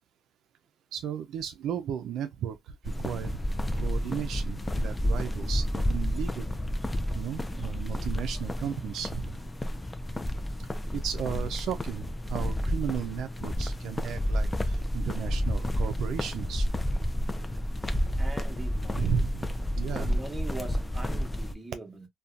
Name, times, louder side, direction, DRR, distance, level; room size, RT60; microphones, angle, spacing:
voice 1, 0.9-3.3 3.8-6.5 7.1-9.4 10.9-16.7 18.9-20.2, right 9 dB, 80° right, 0.3 m, -35 dB
sound 1, 2.8-21.5, equal, 15° left, 0.4 m, -30 dB
voice 2, 18.2-19.1 19.8-22.1, right 2 dB, 15° right, 1.0 m, -41 dB
2.6 x 2.2 x 2.3 m
cardioid pair, 90°, 0 cm